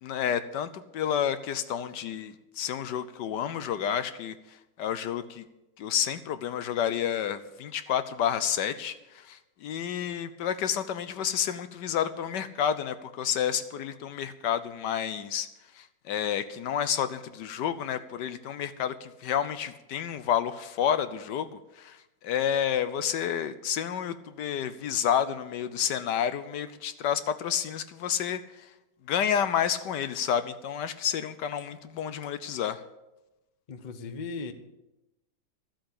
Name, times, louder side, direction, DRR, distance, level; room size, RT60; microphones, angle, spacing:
voice 1, 0.0-5.4 5.8-15.5 15.7-28.7 29.1-32.8, left 9 dB, 70° left, 12 dB, 1.2 m, -30 dB
voice 2, 33.7-34.5, left 4 dB, 50° left, 9 dB, 0.5 m, -37 dB
13.0 x 7.7 x 8.7 m, 0.96 s
omnidirectional pair, 2.2 m